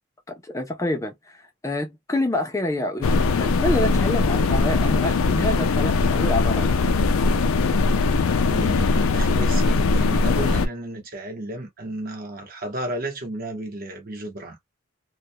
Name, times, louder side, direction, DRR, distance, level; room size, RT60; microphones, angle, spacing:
voice 1, 0.3-6.9, left 1 dB, 15° left, 0.4 m, -27 dB
sound 1, 3.0-10.7, left 3 dB, 90° left, 0.4 m, -20 dB
voice 2, 8.4-14.6, right 1 dB, 45° right, 0.9 m, -33 dB
2.3 x 2.1 x 2.6 m
head